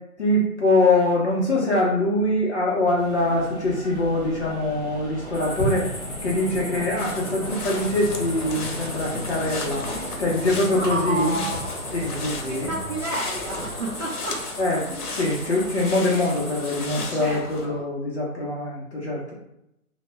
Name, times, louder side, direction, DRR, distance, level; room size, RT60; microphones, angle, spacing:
voice 1, 0.2-5.9 6.2-9.9 10.2-11.4 11.9-12.7 14.6-19.3, left 2 dB, 50° left, -5 dB, 0.5 m, -23 dB
sound 1, 3.0-17.8, equal, 15° right, 0.7 m, -38 dB
sound 2, 5.3-16.9, equal, 15° left, 0.8 m, -36 dB
sound 3, 7.0-17.6, left 3 dB, 90° left, 0.7 m, -36 dB
voice 2, 10.7-11.7 12.5-14.5 17.0-17.8, right 1 dB, 50° right, -5 dB, 0.5 m, -31 dB
2.0 x 2.0 x 3.2 m, 0.83 s
hypercardioid pair, 175°, 44 cm